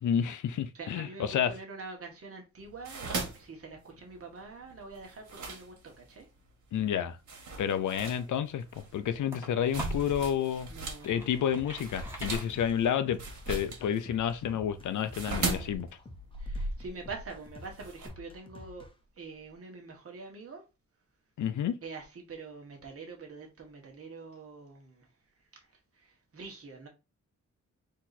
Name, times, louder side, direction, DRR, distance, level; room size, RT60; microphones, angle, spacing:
voice 1, 0.0-1.5 6.7-7.2 7.6-10.7 11.0-13.2 13.5-15.9 21.4-21.8, left 9 dB, 85° left, 0.6 m, -30 dB
voice 2, 0.7-6.3 10.7-11.5 15.3-15.8 16.4-18.9 19.2-20.6 21.8-25.1 25.5-26.9, right 4 dB, 50° right, 1.5 m, -45 dB
sound 1, 2.6-6.2 6.7-6.9 7.3-11.1 11.3-18.1, right 3 dB, 75° right, 1.7 m, -38 dB
sound 2, 8.3-10.1 10.7-13.2, equal, 10° right, 1.5 m, -45 dB
sound 3, 11.1-18.9, left 2 dB, 20° left, 0.7 m, -50 dB
4.2 x 2.9 x 4.1 m
wide cardioid pair, 145°, 29 cm